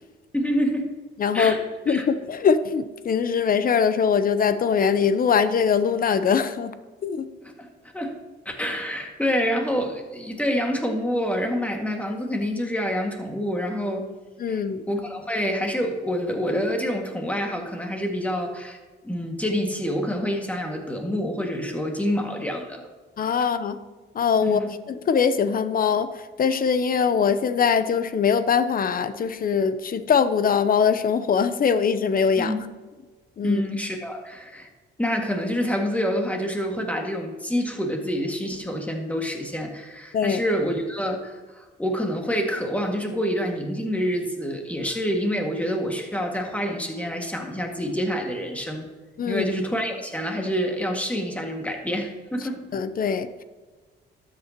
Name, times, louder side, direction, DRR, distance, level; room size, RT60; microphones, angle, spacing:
voice 1, 0.3-0.9 1.3-1.6 1.9-2.1 7.4-7.7 7.9-8.1 8.5-14.1 14.5-14.6 14.9-18.8 19.0-22.8 23.4-23.5 24.4-24.7 32.4-32.6 33.4-34.7 35.0-48.9 49.3-52.6, equal, 5° left, 2 dB, 2.0 m, -27 dB
voice 2, 1.2-1.5 1.9-6.7 7.0-7.3 14.4-14.8 23.2-23.8 24.1-26.1 26.4-32.5 33.4-33.6 40.1-40.4 49.2-49.5 52.7-53.4, left 6 dB, 45° left, 12 dB, 0.8 m, -22 dB
12.5 x 8.6 x 3.0 m, 1.3 s
cardioid pair, 90°, 20 cm